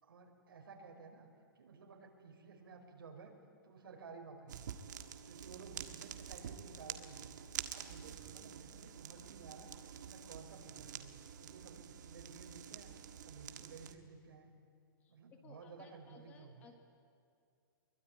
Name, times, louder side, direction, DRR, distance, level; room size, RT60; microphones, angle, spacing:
voice 1, 0.0-1.3 1.6-3.4 3.6-4.7 5.2-7.3 7.7-9.7 10.0-14.5 15.1-16.7, right 4 dB, 75° right, 2 dB, 5.5 m, -55 dB
sound 1, 4.5-14.0, right 8 dB, 50° right, 1.6 m, -48 dB
voice 2, 15.0-16.7, left 5 dB, 15° left, 5 dB, 1.3 m, -61 dB
24.0 x 23.0 x 9.6 m, 2.3 s
hypercardioid pair, 180°, 12 cm